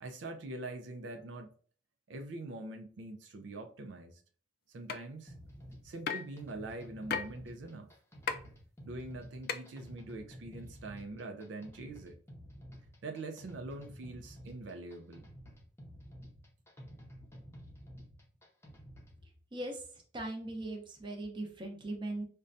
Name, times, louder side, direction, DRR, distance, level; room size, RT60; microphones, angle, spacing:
voice 1, 0.0-1.5 2.1-4.2 4.7-5.4 5.8-7.9 8.8-12.2 13.0-15.3, right 2 dB, 80° right, 0.4 m, -44 dB
sound 1, 4.9-5.0 6.1-6.3 7.1-7.3 8.3-8.4 9.5-9.6, left 6 dB, 55° left, 0.4 m, -33 dB
sound 2, 5.3-19.2, equal, 15° left, 0.6 m, -52 dB
voice 2, 19.5-19.8 20.1-22.2, right 1 dB, 25° right, 0.7 m, -39 dB
5.2 x 2.2 x 2.5 m
head